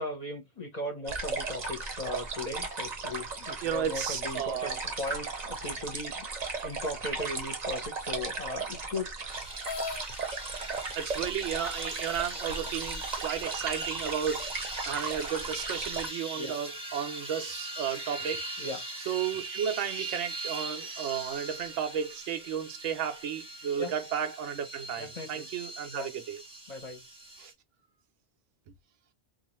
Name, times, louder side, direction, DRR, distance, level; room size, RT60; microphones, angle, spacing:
voice 1, 0.0-6.3 6.6-9.1 16.3-16.6 18.6-18.8 23.8-23.9 25.0-25.5 25.9-26.1 26.7-27.0, left 2 dB, 40° left, 0.9 m, -37 dB
sound 1, 1.1-16.1, right 4 dB, 40° right, 0.7 m, -36 dB
voice 2, 3.6-4.8 11.0-18.4 19.1-26.4 27.4-27.5, right 8 dB, 85° right, 0.9 m, -33 dB
sound 2, 9.3-27.5, right 2 dB, 5° right, 0.7 m, -40 dB
sound 3, 9.6-10.0 11.0-11.1 11.7-11.8 12.5-13.2, left 4 dB, 85° left, 0.9 m, -38 dB
2.5 x 2.4 x 2.9 m
omnidirectional pair, 1.2 m